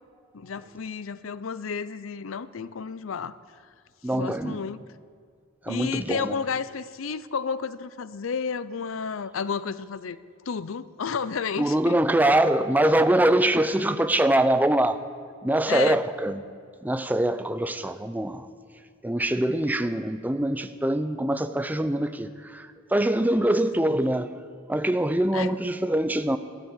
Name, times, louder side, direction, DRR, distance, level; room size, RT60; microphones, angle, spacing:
voice 1, 0.3-3.4 4.1-4.8 5.7-10.2 10.5-12.0 12.8-12.9 15.7-16.0 23.4-24.0 25.3-25.6, left 5 dB, 75° left, 0.6 m, -32 dB
voice 2, 4.0-4.6 5.6-6.3 11.6-15.0 15.4-16.4 16.8-18.5 19.0-24.3 24.7-26.4, right 1 dB, 10° right, 0.5 m, -23 dB
14.0 x 13.0 x 7.4 m
head